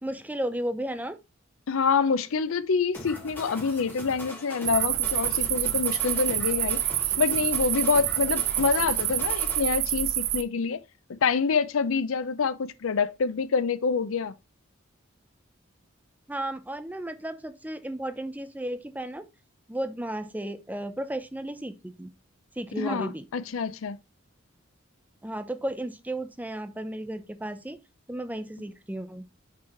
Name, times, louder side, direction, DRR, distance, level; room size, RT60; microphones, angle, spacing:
voice 1, 0.0-1.2 16.3-19.2 19.7-22.1 22.6-23.3 25.2-27.8 28.1-29.3, right 1 dB, 10° right, 0.6 m, -34 dB
voice 2, 1.7-6.8 7.2-10.8 11.2-14.3 22.8-24.0, left 5 dB, 75° left, 0.5 m, -26 dB
sound 1, 2.9-9.6, left 1 dB, 10° left, 2.1 m, -41 dB
sound 2, 4.7-10.4, right 13 dB, 70° right, 0.7 m, -27 dB
6.0 x 4.7 x 4.3 m
head